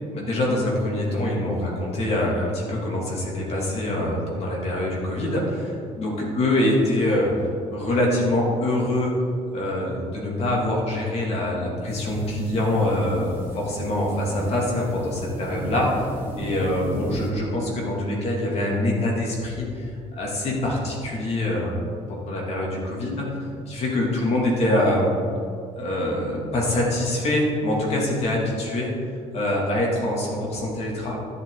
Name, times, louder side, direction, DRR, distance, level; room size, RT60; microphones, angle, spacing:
voice 1, 0.1-7.3 7.7-9.2 9.5-16.1 16.4-21.8 22.1-23.4 23.7-25.1 25.8-28.9 29.3-31.2, left 1 dB, 55° left, -2 dB, 2.8 m, -24 dB
sound 1, 11.9-17.3, right 1 dB, 15° right, 1.7 m, -35 dB
12.5 x 8.2 x 4.0 m, 2.4 s
cardioid pair, 120°, 13 cm